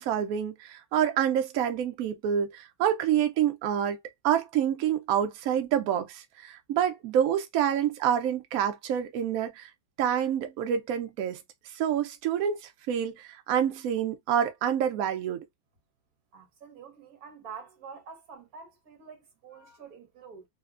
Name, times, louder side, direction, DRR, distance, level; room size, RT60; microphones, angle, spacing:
voice 1, 0.0-4.0 4.2-9.7 10.0-11.4 11.7-15.4, right 9 dB, 90° right, 0.7 m, -27 dB
voice 2, 16.3-20.5, right 6 dB, 55° right, 1.2 m, -47 dB
3.1 x 2.1 x 2.4 m
omnidirectional pair, 2.1 m